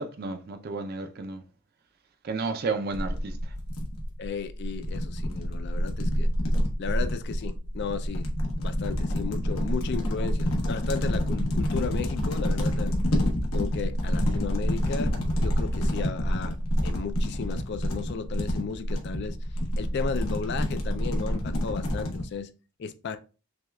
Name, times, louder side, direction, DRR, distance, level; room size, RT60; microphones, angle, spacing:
voice 1, 0.0-1.4 2.2-3.5, right 3 dB, 45° right, 0.4 m, -32 dB
sound 1, 2.9-22.2, equal, 80° left, 1.0 m, -28 dB
voice 2, 4.2-6.3 6.8-8.3 8.6-13.0 13.5-16.6 16.8-19.4 19.8-22.5 22.8-23.2, left 5 dB, 50° left, 0.3 m, -34 dB
6.0 x 2.3 x 2.2 m
head